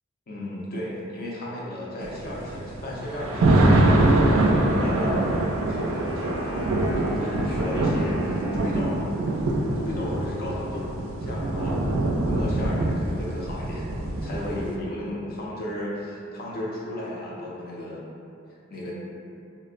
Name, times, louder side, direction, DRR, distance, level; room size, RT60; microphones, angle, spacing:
voice 1, 0.3-9.1 9.8-10.9 11.2-12.0 12.3-13.9 14.2-18.0 18.7-18.9, left 1 dB, 45° left, -4 dB, 0.5 m, -34 dB
sound 1, 2.0-14.8, right 1 dB, 75° right, 0.3 m, -24 dB
Wind instrument woodwind instrument, 4.7-9.7, equal, 90° left, 1.2 m, -39 dB
2.8 x 2.0 x 2.4 m, 2.5 s
head